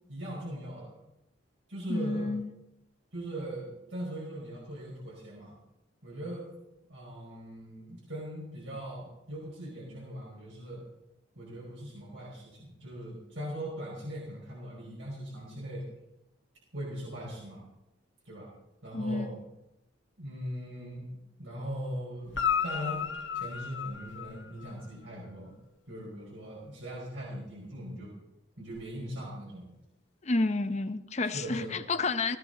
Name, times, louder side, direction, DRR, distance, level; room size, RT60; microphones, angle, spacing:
voice 1, 0.1-1.0 1.7-2.3 3.1-5.5 6.0-6.5 6.9-10.8 11.3-15.8 16.7-17.6 18.2-18.5 18.8-19.4 20.2-23.1 23.3-25.5 25.9-28.2 28.6-29.7 31.2-31.7, equal, 80° right, 5.1 m, -40 dB
voice 2, 1.9-2.5 18.9-19.3 30.2-32.4, left 3 dB, 35° left, 0.8 m, -30 dB
Guitar, 22.3-24.9 28.7-28.8, left 7 dB, 75° left, 1.7 m, -33 dB
18.0 x 14.5 x 4.0 m
head